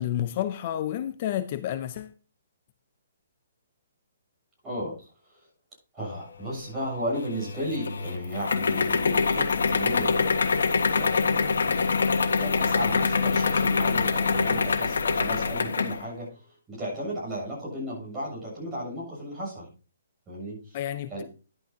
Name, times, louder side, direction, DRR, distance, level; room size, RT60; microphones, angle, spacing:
voice 1, 0.0-2.1 20.7-21.2, left 11 dB, 35° left, 12 dB, 0.4 m, -30 dB
voice 2, 4.6-5.1 5.9-10.1 10.9-11.4 12.2-16.4 16.7-19.7 20.3-20.8 21.1-21.2, equal, 10° right, -6 dB, 7.0 m, -34 dB
sound 1, 7.2-16.0, left 4 dB, 85° left, 1.5 m, -25 dB
11.5 x 11.5 x 2.8 m, 0.35 s
hypercardioid pair, 165°, 0 cm